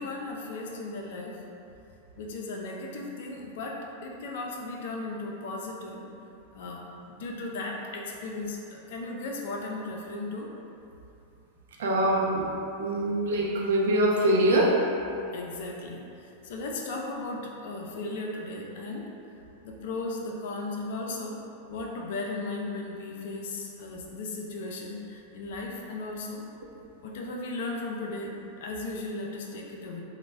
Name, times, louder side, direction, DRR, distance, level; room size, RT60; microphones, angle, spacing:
voice 1, 0.0-1.4 2.2-6.1 6.5-10.5 15.3-19.1 19.6-21.4 21.7-26.4 27.0-30.0, left 2 dB, 55° left, 0 dB, 0.4 m, -36 dB
voice 2, 11.8-12.4 12.8-14.8, right 1 dB, 60° right, -2 dB, 0.6 m, -23 dB
3.9 x 2.1 x 3.3 m, 2.7 s
figure-of-eight pair, 90°, 0 cm